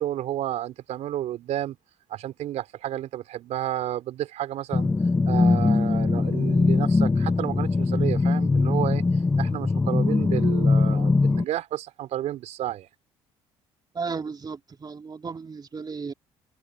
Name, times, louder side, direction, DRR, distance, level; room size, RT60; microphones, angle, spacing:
voice 1, 0.0-1.8 2.1-4.9 5.3-12.9, right 13 dB, 65° right, 4.1 m, -31 dB
sound 1, 4.7-11.4, left 3 dB, 20° left, 0.7 m, -21 dB
voice 2, 13.9-16.1, right 5 dB, 35° right, 3.0 m, -34 dB
hypercardioid pair, 65°, 13 cm